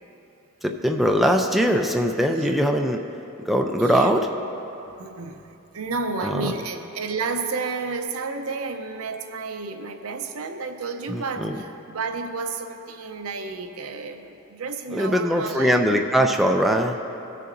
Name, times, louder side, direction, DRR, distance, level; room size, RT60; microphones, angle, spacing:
voice 1, 0.6-3.0 3.5-4.3 6.2-6.4 11.1-11.5 14.9-17.0, equal, ahead, 2 dB, 0.4 m, -21 dB
voice 2, 3.8-4.1 5.0-15.8, right 4 dB, 75° right, 6 dB, 0.6 m, -31 dB
19.0 x 6.7 x 2.6 m, 2.9 s
head